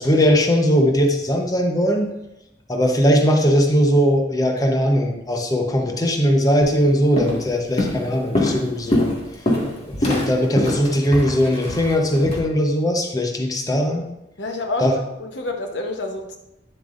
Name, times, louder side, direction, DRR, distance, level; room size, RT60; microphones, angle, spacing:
voice 1, 0.0-2.1 2.7-9.1 9.9-14.0 14.8-15.0, equal, 20° left, 2 dB, 0.8 m, -19 dB
Walk footsteps, 6.6-6.8 7.2-7.5 7.8-12.4, left 1 dB, 35° left, 1.8 m, -23 dB
voice 2, 14.4-16.4, left 2 dB, 85° left, 4 dB, 1.0 m, -28 dB
10.0 x 7.2 x 2.5 m, 0.91 s
head